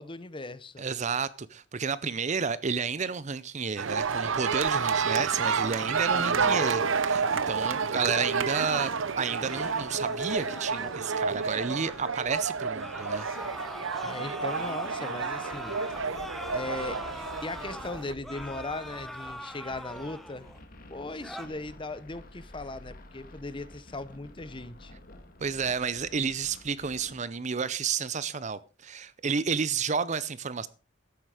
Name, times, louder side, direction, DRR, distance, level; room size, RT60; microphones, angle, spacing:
voice 1, 0.0-0.9 6.2-6.6 14.0-15.8 16.5-17.0 17.4-20.5 20.9-24.9, left 2 dB, 25° left, 0.8 m, -38 dB
voice 2, 0.8-8.9 9.2-13.3 25.4-30.7, right 5 dB, 35° right, 0.6 m, -31 dB
sound 1, 3.8-18.1, right 5 dB, 80° right, 0.8 m, -30 dB
sound 2, 9.5-12.2 12.8-20.6 21.0-21.5, equal, ahead, 1.2 m, -41 dB
sound 3, 15.5-27.2, left 1 dB, 45° left, 2.1 m, -50 dB
13.5 x 9.9 x 4.9 m
head